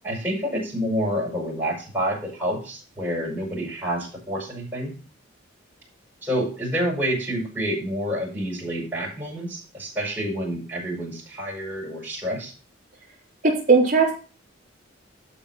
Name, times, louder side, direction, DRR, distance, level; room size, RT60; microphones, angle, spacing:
voice 1, 0.0-4.9 6.2-12.5, equal, 10° right, -3 dB, 5.1 m, -28 dB
voice 2, 13.4-14.1, right 4 dB, 45° right, -3 dB, 4.1 m, -17 dB
12.0 x 5.3 x 5.5 m, 0.36 s
head